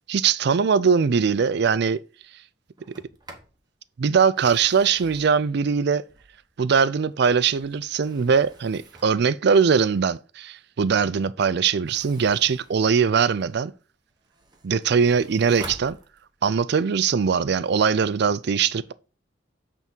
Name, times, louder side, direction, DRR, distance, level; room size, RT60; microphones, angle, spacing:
voice 1, 0.1-2.0 4.0-6.0 6.6-13.7 14.6-16.0 16.4-18.9, right 6 dB, 60° right, 0.4 m, -21 dB
Sliding door, 2.8-3.6 4.2-6.6 7.1-9.3 11.7-13.6 14.1-16.6, right 2 dB, 25° right, 1.2 m, -47 dB
8.2 x 3.6 x 4.5 m
head